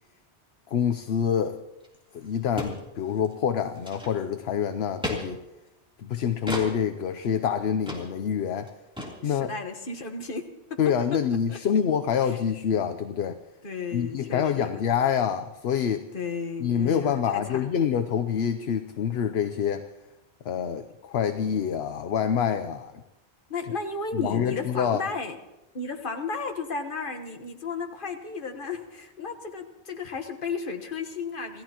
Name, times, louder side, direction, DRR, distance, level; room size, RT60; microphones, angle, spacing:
voice 1, 0.7-1.6 2.1-5.4 6.0-8.7 9.2-9.5 10.8-13.4 13.9-16.1 16.6-19.9 20.4-23.0 24.1-25.0, left 8 dB, 70° left, 9 dB, 0.9 m, -26 dB
sound 1, 1.8-1.9 2.1-2.2 2.6-2.8 3.1-3.3 3.7-4.4 5.0-5.2 6.5-6.7 7.2-7.3 7.9-8.0 8.3-8.4 8.6-8.7 9.0-9.1, left 1 dB, 5° right, 3.2 m, -33 dB
voice 2, 9.2-10.8 11.1-11.2 11.5-11.6 12.2-12.4 13.6-14.8 16.1-17.7 23.5-25.4 25.7-31.6, left 4 dB, 50° left, 5 dB, 1.5 m, -34 dB
27.0 x 16.0 x 2.9 m, 0.98 s
omnidirectional pair, 1.1 m